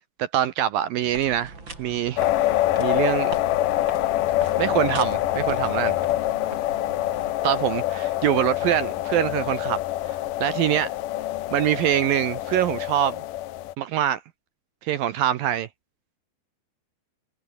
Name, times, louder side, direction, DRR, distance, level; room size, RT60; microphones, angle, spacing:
voice 1, 0.2-1.5 1.8-2.5 2.8-3.3 4.6-6.0 7.4-9.8 10.1-10.9 11.5-13.2 13.8-14.2 14.8-15.7, right 11 dB, 75° right, 2.2 m, -24 dB
sound 1, 1.0-7.3, right 3 dB, 25° right, 5.5 m, -41 dB
sound 2, 2.2-13.7, left 15 dB, 85° left, 1.9 m, -25 dB
omnidirectional pair, 5.2 m